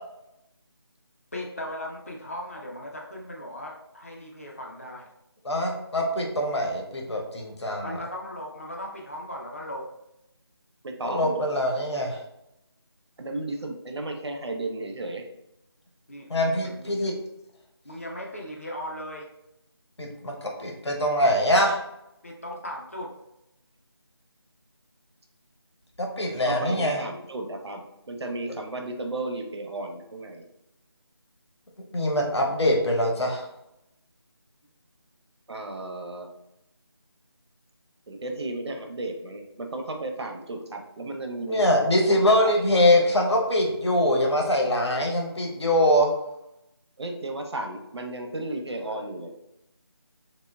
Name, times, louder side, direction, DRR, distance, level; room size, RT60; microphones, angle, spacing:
voice 1, 1.3-5.1 7.8-9.9 16.1-17.0 17.8-19.3 22.2-23.1 48.5-48.6 48.8-49.0, left 1 dB, 35° left, -1 dB, 0.4 m, -38 dB
voice 2, 5.4-8.0 11.0-12.2 16.3-17.1 20.0-21.8 26.0-27.1 31.9-33.5 41.5-46.1, left 1 dB, 90° left, 1 dB, 0.8 m, -23 dB
voice 3, 10.8-11.5 13.2-15.2 26.5-30.4 35.5-36.3 38.1-42.2 42.4-42.6 47.0-49.3, right 2 dB, 80° right, 3 dB, 0.5 m, -34 dB
2.9 x 2.1 x 2.2 m, 0.84 s
figure-of-eight pair, 175°, 14 cm